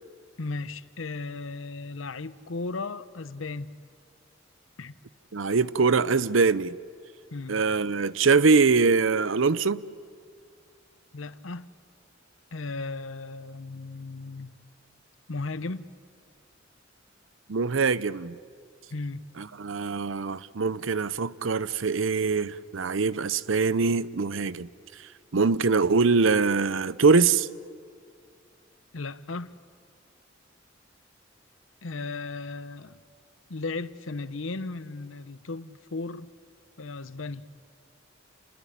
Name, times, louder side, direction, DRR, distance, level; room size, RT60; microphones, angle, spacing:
voice 1, 0.4-3.7 4.8-4.9 7.3-7.6 11.1-11.7 12.5-14.6 15.3-15.8 18.9-19.3 28.9-29.6 31.8-33.0 33.5-36.3 36.8-37.5, left 3 dB, 85° left, 0.9 m, -35 dB
voice 2, 5.3-6.8 7.5-9.8 17.5-18.4 19.4-24.7 25.3-27.5, right 4 dB, 75° right, 0.7 m, -23 dB
29.5 x 20.5 x 9.9 m
head